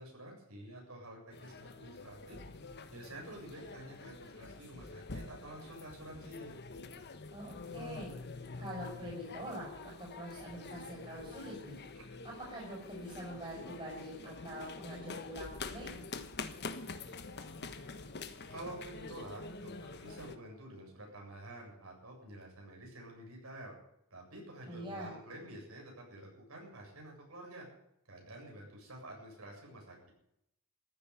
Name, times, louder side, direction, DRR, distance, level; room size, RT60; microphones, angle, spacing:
voice 1, 0.0-2.4 2.9-6.5 12.0-12.1 18.5-23.8 24.1-27.7 28.1-30.1, right 1 dB, 70° right, 0 dB, 7.5 m, -49 dB
sound 1, 1.3-20.4, left 3 dB, 50° left, 1.3 m, -46 dB
voice 2, 7.3-11.8 12.2-15.9 24.7-25.1, equal, 25° right, -5 dB, 6.9 m, -45 dB
14.5 x 9.4 x 9.9 m, 0.79 s
head